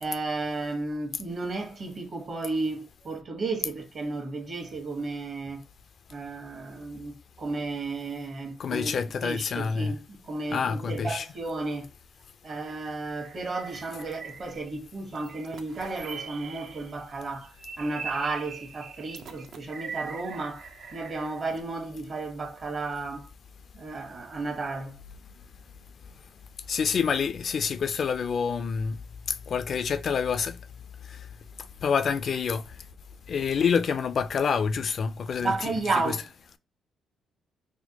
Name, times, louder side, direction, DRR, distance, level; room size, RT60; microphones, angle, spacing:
voice 1, 0.0-5.6 6.1-9.0 9.2-11.9 12.4-20.6 20.9-23.3 23.7-25.0 35.4-36.3, right 3 dB, 45° right, 1.2 m, -33 dB
voice 2, 8.6-10.0 10.5-11.3 26.7-29.0 29.3-30.6 31.1-31.3 31.8-32.6 33.3-35.7, left 6 dB, 55° left, 0.3 m, -27 dB
sound 1, 12.7-14.8 15.1-17.0 17.4-21.6, right 6 dB, 65° right, 0.6 m, -42 dB
4.2 x 2.2 x 2.8 m
cardioid pair, 90°, 0 cm